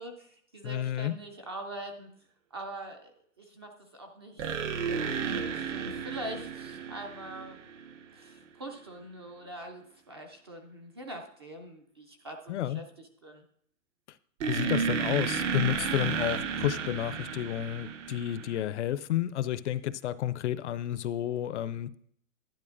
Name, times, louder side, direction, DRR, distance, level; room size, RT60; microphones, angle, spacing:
voice 1, 0.0-2.1 2.5-3.1 3.4-7.6 8.1-13.4, right 1 dB, 20° right, 4 dB, 0.4 m, -43 dB
voice 2, 0.6-1.1 12.5-12.8 14.5-22.0, left 12 dB, 55° left, 16 dB, 0.5 m, -31 dB
devistating synth monstar, 4.4-8.0 14.4-18.6, right 6 dB, 60° right, 1.2 m, -32 dB
11.0 x 10.0 x 2.5 m, 0.65 s
hypercardioid pair, 155°, 42 cm